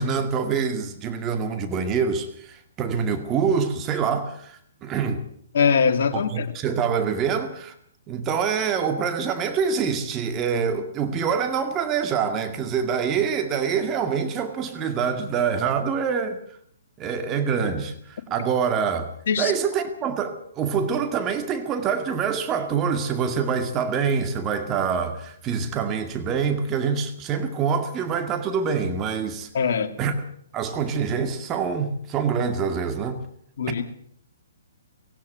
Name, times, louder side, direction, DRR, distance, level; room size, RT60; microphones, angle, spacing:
voice 1, 0.0-5.2 6.1-7.7 8.1-16.4 17.0-19.1 19.4-29.5 30.0-30.1 30.5-33.2, right 6 dB, 20° right, 2.1 m, -25 dB
voice 2, 5.5-6.5 19.3-19.5 29.5-30.0 33.6-33.8, left 6 dB, 55° left, 2.4 m, -22 dB
18.5 x 17.5 x 8.1 m
figure-of-eight pair, 125°, 0 cm